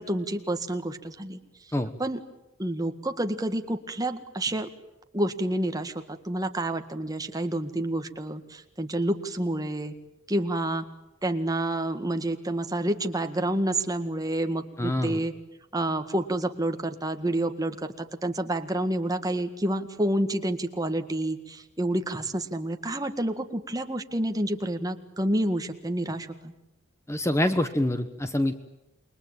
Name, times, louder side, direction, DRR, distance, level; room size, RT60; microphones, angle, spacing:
voice 1, 0.0-1.4 2.0-2.2 2.6-4.7 5.1-9.9 10.3-10.8 11.2-15.3 15.7-26.5, right 1 dB, 20° right, 7 dB, 1.8 m, -29 dB
voice 2, 14.8-15.2 27.1-28.5, left 1 dB, 15° left, 10 dB, 1.2 m, -26 dB
28.5 x 22.5 x 9.0 m, 0.92 s
head